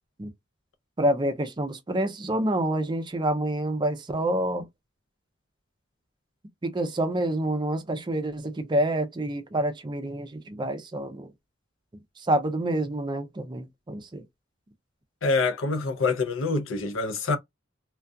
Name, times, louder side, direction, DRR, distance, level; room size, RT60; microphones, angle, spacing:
voice 1, 1.0-4.7 6.6-11.3 12.2-14.2, right 1 dB, 25° right, 0.4 m, -27 dB
voice 2, 15.2-17.4, left 3 dB, 70° left, 0.5 m, -26 dB
2.3 x 2.2 x 2.5 m
head